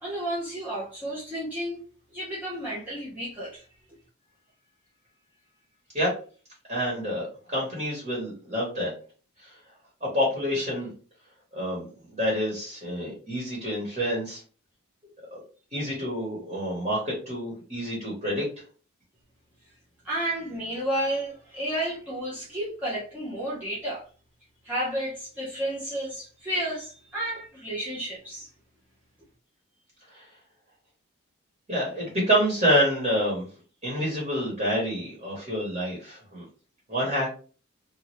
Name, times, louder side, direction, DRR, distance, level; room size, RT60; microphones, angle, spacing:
voice 1, 0.0-1.8 2.1-3.6 20.0-24.0 24.6-28.5, right 1 dB, 10° right, 0.6 m, -31 dB
voice 2, 6.7-8.9 9.4-9.6 10.0-10.9 11.5-11.8 12.1-14.4 15.3-15.4 15.7-18.5 30.1-30.2 31.7-33.4 33.8-36.4 36.9-37.3, equal, 30° right, 1.3 m, -27 dB
2.7 x 2.6 x 3.1 m
head